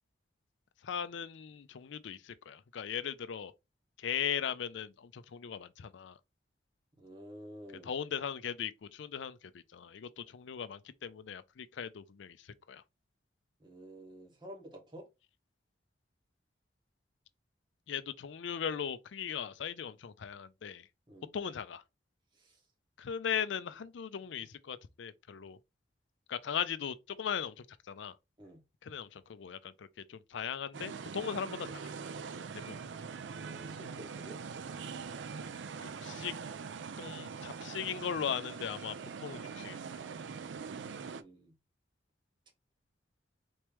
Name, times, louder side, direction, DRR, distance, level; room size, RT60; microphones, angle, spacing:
voice 1, 0.8-3.5 4.0-6.2 7.8-12.8 17.9-20.9 21.3-21.8 23.0-25.6 26.3-28.1 28.8-31.9 32.5-32.7 35.8-36.3 37.0-38.9 39.2-40.0, left 8 dB, 80° left, 0.4 m, -38 dB
voice 2, 7.0-7.9 13.6-15.1 21.1-21.3 22.3-22.6 28.4-28.6 33.5-34.4 40.7-41.5, right 1 dB, 25° right, 1.4 m, -50 dB
sound 1, 30.7-41.2, right 5 dB, 75° right, 0.4 m, -43 dB
4.3 x 3.0 x 3.3 m
head